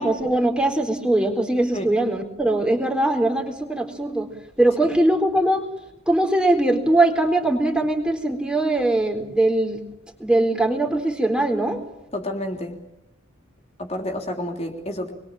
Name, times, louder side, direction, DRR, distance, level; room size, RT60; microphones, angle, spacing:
voice 1, 0.0-4.3 4.6-5.6 6.1-9.8 10.2-11.8, right 1 dB, 5° right, 4 dB, 3.9 m, -21 dB
voice 2, 12.1-12.8 13.8-15.1, left 1 dB, 30° left, 3 dB, 3.4 m, -29 dB
28.0 x 23.0 x 7.5 m, 0.89 s
head